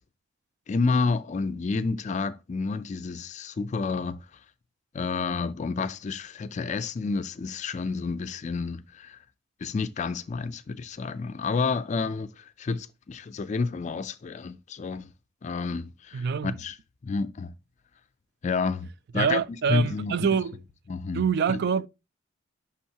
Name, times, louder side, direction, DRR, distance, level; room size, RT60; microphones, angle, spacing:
voice 1, 0.7-4.3 4.9-9.2 9.6-15.1 15.4-16.8 17.0-17.5 18.4-19.4 19.7-20.3 20.9-21.2 21.5-21.6, left 4 dB, 40° left, 0.4 m, -30 dB
voice 2, 16.1-16.6 19.1-20.6 21.1-21.9, right 6 dB, 60° right, 0.3 m, -26 dB
10.0 x 3.6 x 2.8 m
head